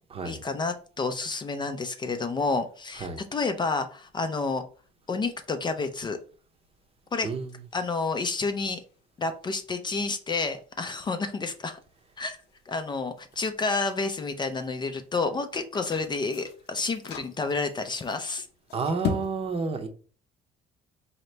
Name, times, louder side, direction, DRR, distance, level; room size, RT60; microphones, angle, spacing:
voice 1, 0.2-4.6 5.1-6.2 7.1-7.3 7.7-8.8 9.2-11.8 12.2-12.4 12.7-18.5, left 3 dB, 25° left, 0.4 m, -30 dB
sound 1, 2.9-19.3, left 6 dB, 90° left, 0.8 m, -43 dB
voice 2, 18.7-19.9, right 4 dB, 35° right, 0.7 m, -30 dB
4.0 x 2.8 x 3.2 m
cardioid pair, 110°, 17 cm